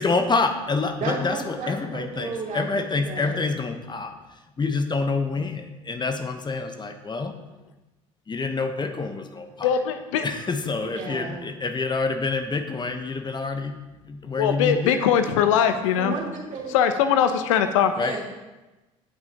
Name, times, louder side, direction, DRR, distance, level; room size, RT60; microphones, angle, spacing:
voice 1, 0.0-7.3 8.3-9.8 10.2-15.0 18.0-18.2, left 3 dB, 25° left, 7 dB, 1.0 m, -27 dB
voice 2, 1.0-3.4 10.9-11.5 15.9-16.7 17.8-18.3, right 3 dB, 50° right, -2 dB, 2.8 m, -33 dB
voice 3, 9.6-10.3 14.4-16.1 16.7-17.9, left 8 dB, 80° left, 9 dB, 0.7 m, -21 dB
17.0 x 6.0 x 2.9 m, 1.1 s
hypercardioid pair, 65°, 16 cm